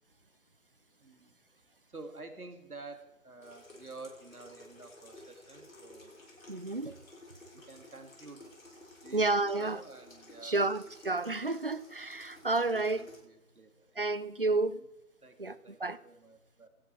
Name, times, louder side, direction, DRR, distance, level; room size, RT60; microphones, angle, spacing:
voice 1, 1.0-1.4 1.9-6.2 7.5-8.6 9.0-10.7 12.3-14.2 14.4-14.9 15.2-16.7, right 3 dB, 75° right, 2.5 m, -50 dB
Water tap faucet / Sink (filling or washing), 3.4-13.2, left 1 dB, 65° left, 6.3 m, -54 dB
voice 2, 6.5-7.0 9.1-9.8 10.4-13.0 14.0-14.8 15.4-16.0, right 3 dB, 40° right, 0.6 m, -31 dB
18.0 x 12.5 x 4.7 m
figure-of-eight pair, 155°, 45 cm